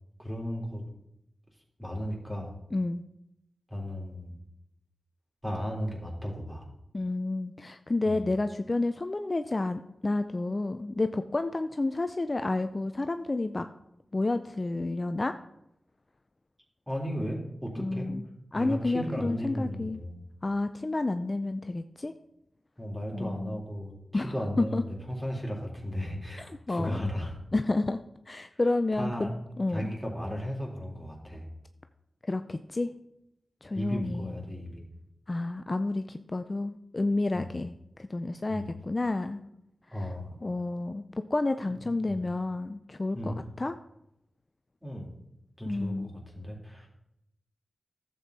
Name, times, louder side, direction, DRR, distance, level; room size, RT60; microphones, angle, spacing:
voice 1, 0.2-0.8 1.8-2.5 3.7-4.3 5.4-6.7 8.1-8.2 16.9-18.1 18.5-20.2 22.8-27.3 28.9-29.3 29.7-31.4 33.7-34.9 37.3-37.5 38.5-38.7 39.9-40.3 41.7-41.8 42.1-42.2 43.1-43.4 44.8-45.1 45.6-46.9, equal, 5° right, -1 dB, 3.7 m, -35 dB
voice 2, 2.7-3.0 6.9-13.7 14.1-15.3 17.8-18.2 18.5-20.0 20.4-22.1 23.1-23.6 24.1-24.8 26.4-27.0 27.5-28.0 28.3-29.3 29.6-29.9 32.2-32.9 33.6-34.3 35.3-37.7 38.0-39.4 40.4-41.0 41.3-43.8 45.7-46.1, left 2 dB, 40° left, 9 dB, 0.5 m, -30 dB
11.5 x 7.8 x 4.2 m, 0.83 s
cardioid pair, 40°, 0 cm